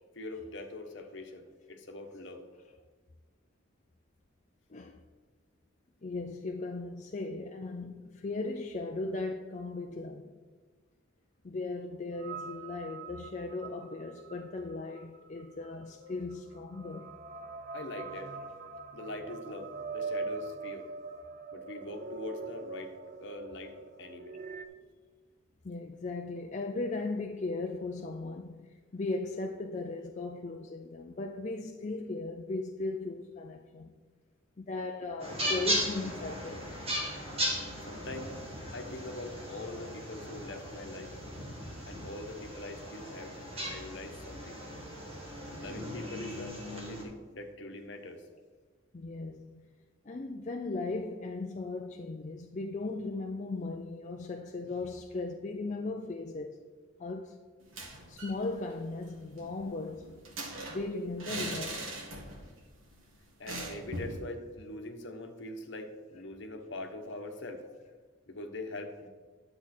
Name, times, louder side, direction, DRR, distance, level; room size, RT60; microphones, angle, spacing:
voice 1, 0.1-2.4 17.7-18.4 18.9-20.9 21.5-22.9 23.2-24.4 37.8-38.3 38.7-41.1 41.8-44.6 45.5-48.2 63.4-67.6 68.3-69.1, left 2 dB, 60° left, 1.2 m, -43 dB
voice 2, 4.7-5.0 6.0-10.4 11.4-17.1 25.6-33.9 34.6-36.8 48.9-49.6 50.1-56.6 57.0-57.4 58.1-60.2 60.7-61.8, left 3 dB, 35° left, 0.4 m, -37 dB
sound 1, 12.2-24.6, right 3 dB, 45° right, 0.5 m, -42 dB
sound 2, 35.2-47.0, equal, 30° right, 2.1 m, -37 dB
sound 3, 57.6-58.4 58.7-58.8 59.1-62.5 62.8-63.0 63.5-64.2, right 2 dB, 90° right, 1.8 m, -40 dB
10.0 x 7.4 x 4.3 m
head